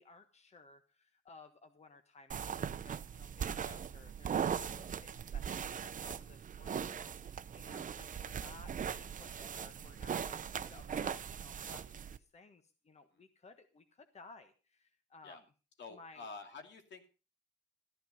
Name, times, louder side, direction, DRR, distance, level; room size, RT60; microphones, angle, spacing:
voice 1, 0.0-15.4 15.9-16.3, left 3 dB, 35° left, 8 dB, 1.3 m, -58 dB
sound 1, 2.3-12.2, right 8 dB, 40° right, 0.7 m, -40 dB
voice 2, 15.8-17.1, left 4 dB, 65° left, 6 dB, 2.7 m, -49 dB
14.0 x 10.5 x 5.3 m, 0.34 s
cardioid pair, 90°, 20 cm